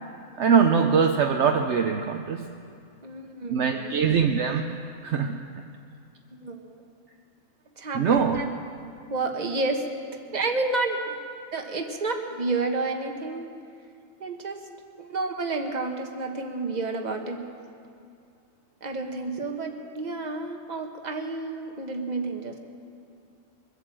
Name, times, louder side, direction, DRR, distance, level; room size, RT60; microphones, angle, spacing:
voice 1, 0.4-2.5 3.5-4.7 5.0-5.4 7.9-8.4, right 6 dB, 65° right, 4 dB, 0.9 m, -22 dB
voice 2, 3.0-4.0 6.3-6.8 7.8-8.5 9.1-9.9 10.1-11.0 11.5-13.5 14.2-14.6 14.9-17.5 18.8-22.6, right 3 dB, 35° right, 4 dB, 1.3 m, -30 dB
23.0 x 8.3 x 7.6 m, 2.4 s
omnidirectional pair, 1.4 m